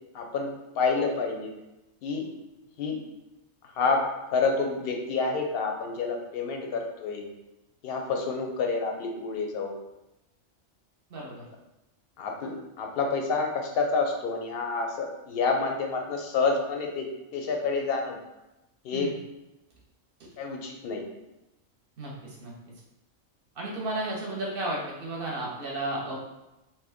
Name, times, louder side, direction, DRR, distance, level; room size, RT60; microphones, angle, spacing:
voice 1, 0.1-0.5 0.8-1.5 2.0-2.3 2.8-3.0 3.8-4.0 4.3-7.3 7.8-9.8 12.2-17.1 17.3-18.2 18.8-19.1 20.4-21.0, left 4 dB, 65° left, 2 dB, 0.6 m, -28 dB
voice 2, 11.1-11.5 18.9-19.1 22.0-22.5 23.6-26.2, right 2 dB, 55° right, -3 dB, 0.8 m, -33 dB
2.9 x 2.2 x 3.4 m, 0.95 s
omnidirectional pair, 1.3 m